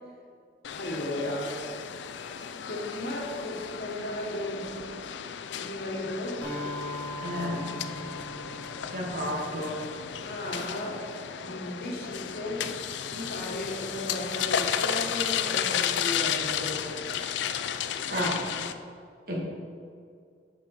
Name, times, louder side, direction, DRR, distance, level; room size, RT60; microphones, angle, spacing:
sound 1, 0.6-18.7, left 8 dB, 80° left, 0.4 m, -33 dB
voice 1, 0.7-1.6 2.7-4.9 5.5-6.5 10.2-11.1 11.4-12.6 13.0-16.9, left 1 dB, 55° left, -2 dB, 1.5 m, -35 dB
Acoustic guitar, 6.4-10.3, left 1 dB, 10° left, 2.3 m, -40 dB
voice 2, 7.2-7.7 8.9-9.8 18.1-18.4 19.3-19.4, equal, 55° right, -3 dB, 1.6 m, -31 dB
8.1 x 5.9 x 4.7 m, 2.2 s
head